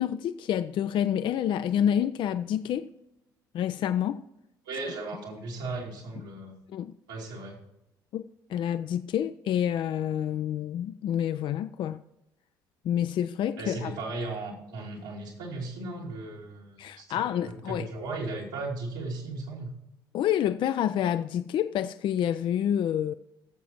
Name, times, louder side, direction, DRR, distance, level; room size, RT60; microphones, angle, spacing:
voice 1, 0.0-2.9 3.5-4.2 6.7-6.9 8.1-8.2 8.5-12.0 12.8-13.9 16.8-17.9 20.1-23.1, left 10 dB, 50° left, 0.4 m, -28 dB
voice 2, 4.6-6.5 7.1-7.6 13.6-19.7, right 2 dB, 75° right, 2.5 m, -36 dB
18.5 x 7.2 x 2.9 m
hypercardioid pair, 55°, 10 cm